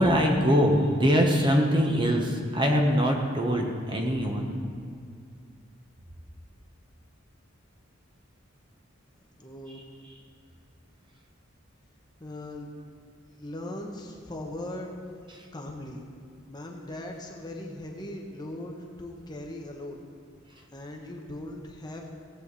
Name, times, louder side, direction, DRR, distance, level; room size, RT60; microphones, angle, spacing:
voice 1, 0.0-4.6, equal, 25° right, 1 dB, 1.2 m, -23 dB
voice 2, 9.4-9.8 12.2-12.7 13.3-14.9 15.5-16.0 16.5-20.0 20.7-22.1, left 1 dB, 20° left, 0 dB, 1.1 m, -39 dB
17.5 x 8.1 x 4.1 m, 2.3 s
head